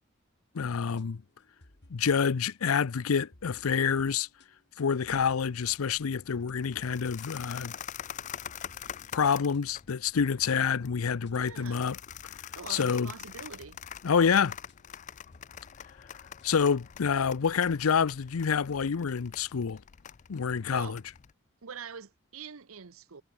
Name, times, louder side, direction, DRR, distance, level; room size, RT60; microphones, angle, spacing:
voice 1, 0.5-1.2 1.9-4.3 4.8-7.7 9.1-12.0 12.7-13.1 14.0-14.6 16.4-19.8 20.3-21.0, left 6 dB, 90° left, 0.6 m, -27 dB
sound 1, 0.6-18.9, left 1 dB, 55° left, 2.5 m, -61 dB
sound 2, 5.0-21.3, left 9 dB, 35° left, 0.4 m, -45 dB
voice 2, 11.3-11.9 12.5-13.8 20.7-21.0 21.6-23.2, right 6 dB, 85° right, 0.9 m, -44 dB
head